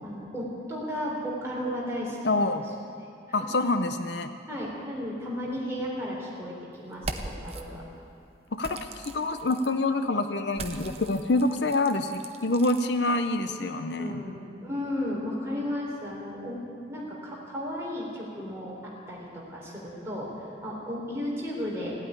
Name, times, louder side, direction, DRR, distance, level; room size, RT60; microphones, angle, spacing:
voice 1, 0.0-2.5 4.5-7.8 13.5-13.7 14.0-16.6 16.9-22.0, left 1 dB, 15° right, -5 dB, 3.7 m, -34 dB
voice 2, 2.2-2.7 3.3-4.3 8.5-14.3, left 2 dB, 70° left, 8 dB, 0.7 m, -26 dB
sound 1, 6.9-7.6 8.6-9.7 10.5-12.8, right 3 dB, 35° right, 0.8 m, -39 dB
16.5 x 8.9 x 9.9 m, 2.5 s
head